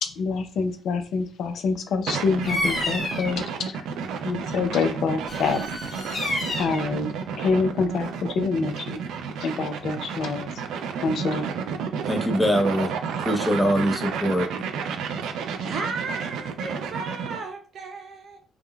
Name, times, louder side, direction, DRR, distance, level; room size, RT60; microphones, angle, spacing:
voice 1, 0.0-3.9 4.2-5.6 6.6-7.1 7.4-9.0 9.4-10.5 11.0-11.5, left 4 dB, 75° left, 7 dB, 0.5 m, -26 dB
sound 1, 2.1-17.5, right 6 dB, 85° right, 0.3 m, -31 dB
Bird vocalization bird call bird song, 2.4-3.4 5.3-6.9, left 1 dB, 50° left, 1.3 m, -29 dB
voice 2, 12.1-12.9 13.2-14.5, equal, 5° left, 4 dB, 0.6 m, -23 dB
voice 3, 15.6-18.4, right 4 dB, 65° right, 3 dB, 0.7 m, -34 dB
3.5 x 2.1 x 2.2 m, 0.38 s
cardioid pair, 90°, 0 cm